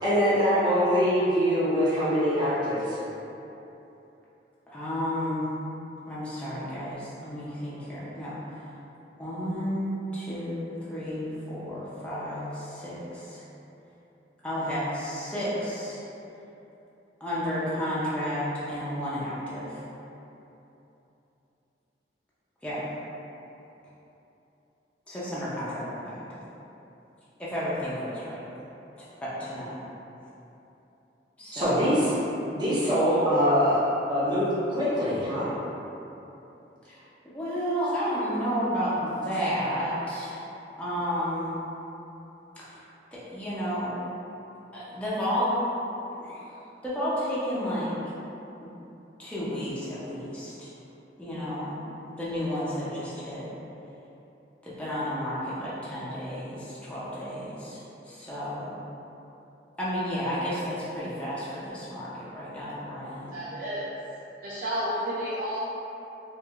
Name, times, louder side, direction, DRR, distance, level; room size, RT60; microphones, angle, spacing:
voice 1, 0.0-3.0 31.5-32.1 32.5-35.5, equal, 25° right, -11 dB, 1.0 m, -23 dB
voice 2, 4.7-5.5 6.1-8.4 9.2-13.4 14.4-16.0 17.2-19.8 22.6-22.8 25.1-26.2 27.4-28.5 29.2-29.8 31.4-32.0 36.9-37.0 37.3-40.4 40.8-41.5 42.6-42.8 43.1-44.0 44.7-45.5 46.2-46.6 46.8-47.9 48.6-48.7 49.2-50.7 51.2-51.7 52.1-53.5 54.6-57.8 58.0-58.7 59.8-63.4, equal, 5° left, -10 dB, 0.6 m, -32 dB
voice 3, 63.3-63.9 64.4-65.6, equal, 50° right, -10 dB, 0.5 m, -31 dB
4.6 x 2.5 x 2.4 m, 3.0 s
head